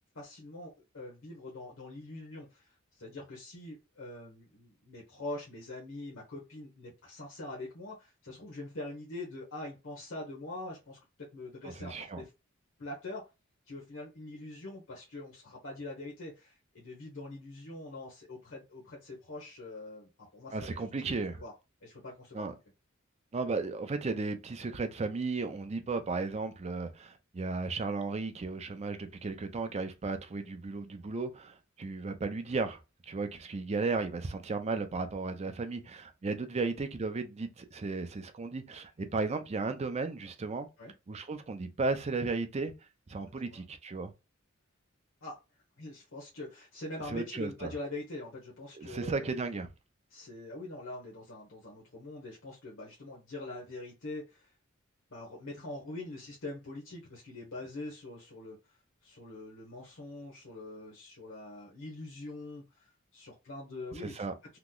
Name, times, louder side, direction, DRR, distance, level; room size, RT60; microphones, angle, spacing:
voice 1, 0.1-2.7 3.0-12.3 12.8-13.2 13.7-20.9 21.3-21.5 21.8-22.5 40.8-40.9 43.5-43.6 45.2-45.3 45.8-49.3 50.1-54.5 55.1-58.6 59.0-64.6, left 2 dB, 65° left, 0.9 m, -44 dB
voice 2, 11.6-12.2 20.5-21.4 22.3-22.5 23.3-40.7 41.1-42.7 43.1-44.1 47.1-47.7 48.8-49.7 64.0-64.3, right 3 dB, 30° right, 0.5 m, -35 dB
2.9 x 2.0 x 3.7 m
head